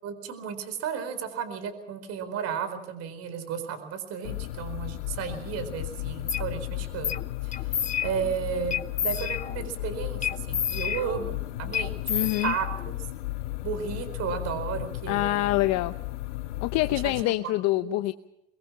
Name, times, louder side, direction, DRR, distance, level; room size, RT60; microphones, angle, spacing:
voice 1, 0.0-12.0 12.4-12.9 13.6-15.5 16.7-18.0, right 7 dB, 45° right, 10 dB, 4.5 m, -34 dB
sound 1, 4.2-17.2, left 16 dB, 85° left, 2.1 m, -35 dB
sound 2, 6.3-6.5 7.0-7.2 7.5-8.3 8.7-9.7 10.2-11.4 11.7-13.0, left 9 dB, 20° left, 1.0 m, -30 dB
voice 2, 12.1-12.5 15.1-15.9 16.6-18.1, left 18 dB, 50° left, 11 dB, 0.9 m, -25 dB
24.0 x 21.5 x 6.0 m, 0.86 s
supercardioid pair, 120°, 35 cm